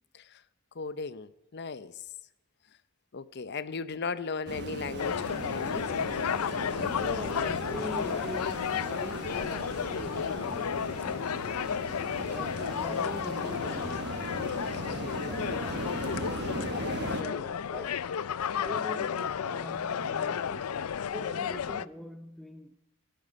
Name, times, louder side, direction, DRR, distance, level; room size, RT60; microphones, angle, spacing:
voice 1, 0.7-2.0 3.1-5.9, left 4 dB, 50° left, 0.7 m, -37 dB
sound 1, 4.5-17.2, right 2 dB, 50° right, 1.2 m, -39 dB
sound 2, 5.0-21.9, left 7 dB, 85° left, 0.5 m, -32 dB
voice 2, 6.9-11.4 12.2-14.4 14.8-16.4 17.0-18.2 18.5-22.7, equal, ahead, 0.6 m, -43 dB
17.0 x 16.0 x 5.4 m
head